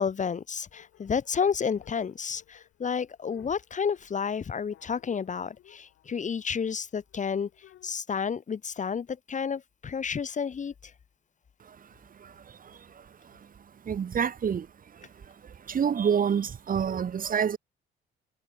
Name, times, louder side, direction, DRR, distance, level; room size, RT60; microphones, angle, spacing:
voice 1, 0.0-7.5 7.8-10.7, left 6 dB, 40° left, 1.1 m, -31 dB
sound 1, 0.7-7.9, left 12 dB, 75° left, 7.7 m, -59 dB
voice 2, 13.9-14.6 15.7-17.6, right 7 dB, 45° right, 1.2 m, -26 dB
cardioid pair, 90°, 20 cm